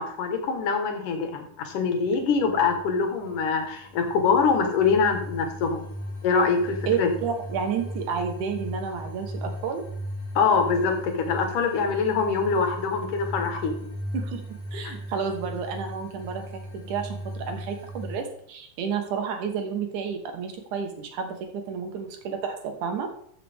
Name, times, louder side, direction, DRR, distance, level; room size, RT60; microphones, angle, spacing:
voice 1, 0.0-5.9 6.2-7.1 10.4-13.9 14.8-15.0, left 5 dB, 75° left, 4 dB, 3.0 m, -24 dB
sound 1, 2.0-18.2, equal, 50° left, 2.3 m, -38 dB
voice 2, 6.9-9.8 14.1-16.4 16.7-23.1, right 6 dB, 70° right, 4 dB, 2.7 m, -31 dB
14.0 x 6.7 x 3.5 m, 0.67 s
omnidirectional pair, 3.7 m